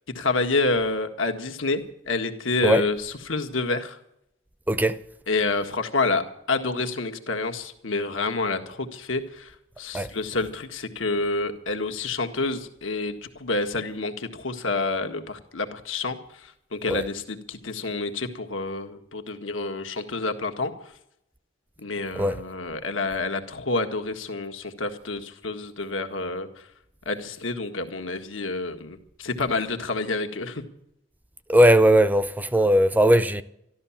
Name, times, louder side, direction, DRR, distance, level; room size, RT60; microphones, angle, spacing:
voice 1, 0.2-4.0 5.3-20.7 21.8-26.5 27.1-30.6, left 3 dB, 85° left, 1.7 m, -28 dB
voice 2, 4.7-5.0 9.9-10.1 16.9-17.0 22.2-22.4 31.5-33.4, equal, 10° right, 0.5 m, -19 dB
13.0 x 13.0 x 7.3 m
head